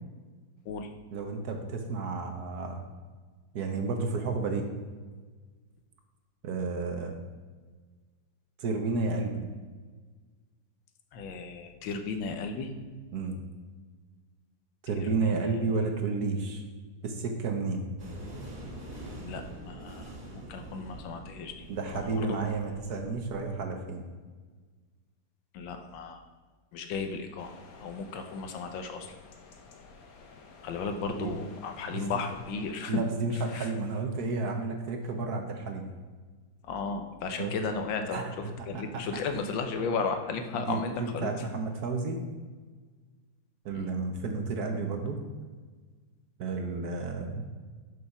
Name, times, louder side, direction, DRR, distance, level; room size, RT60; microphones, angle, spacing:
voice 1, 1.1-2.8 3.5-4.7 6.4-7.1 8.6-9.5 13.1-13.4 14.8-16.6 17.0-17.9 21.7-24.1 31.1-31.3 31.9-32.0 32.9-35.9 37.4-37.5 38.1-38.3 38.6-39.0 40.5-42.2 43.6-45.2 46.4-47.4, right 3 dB, 60° right, 4 dB, 1.3 m, -31 dB
voice 2, 11.1-12.7 14.9-15.4 19.2-21.7 21.9-22.4 25.5-26.2 26.7-27.5 27.8-29.1 30.6-33.0 33.5-33.7 36.6-41.3 43.7-43.9, left 4 dB, 80° left, 6 dB, 1.5 m, -35 dB
sound 1, 18.0-23.6, right 1 dB, 45° right, 2.3 m, -45 dB
sound 2, 27.4-32.7, left 4 dB, 55° left, 1.2 m, -52 dB
6.5 x 5.5 x 5.9 m, 1.4 s
omnidirectional pair, 2.1 m